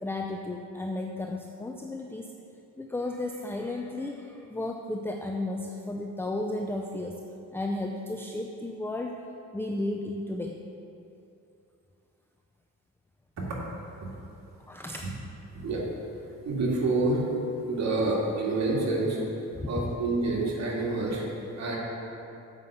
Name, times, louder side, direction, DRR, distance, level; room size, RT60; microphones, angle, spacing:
voice 1, 0.0-2.3 2.8-7.2 7.5-9.2 9.5-10.6 14.6-15.1 19.5-19.9, left 2 dB, 10° left, 2 dB, 0.5 m, -33 dB
voice 2, 16.5-17.2 17.6-19.2 19.7-21.3 21.6-21.8, right 2 dB, 65° right, -3 dB, 2.1 m, -27 dB
7.5 x 5.6 x 6.8 m, 2.8 s
cardioid pair, 90°, 30 cm